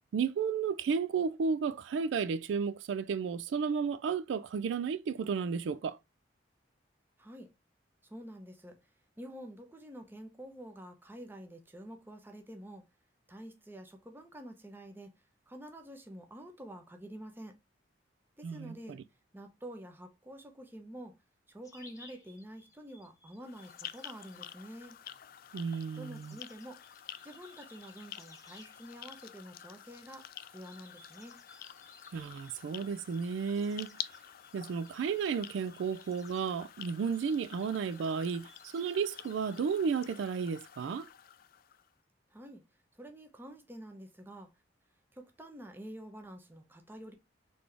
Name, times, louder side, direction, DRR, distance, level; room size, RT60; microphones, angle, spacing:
voice 1, 0.1-6.0 18.4-19.0 25.5-26.4 32.1-34.0 34.5-41.1, right 6 dB, 75° right, 0.3 m, -33 dB
voice 2, 7.2-7.5 8.0-8.8 9.2-12.8 13.3-15.1 15.5-17.6 18.4-19.0 19.3-21.1 21.5-25.0 26.0-26.8 27.2-31.4 42.3-42.6 42.9-44.5 45.1-47.1, equal, 10° right, 0.8 m, -48 dB
sound 1, 21.6-39.7, left 2 dB, 20° left, 0.9 m, -61 dB
sound 2, 23.4-41.9, left 10 dB, 50° left, 0.4 m, -49 dB
4.0 x 3.3 x 3.3 m
head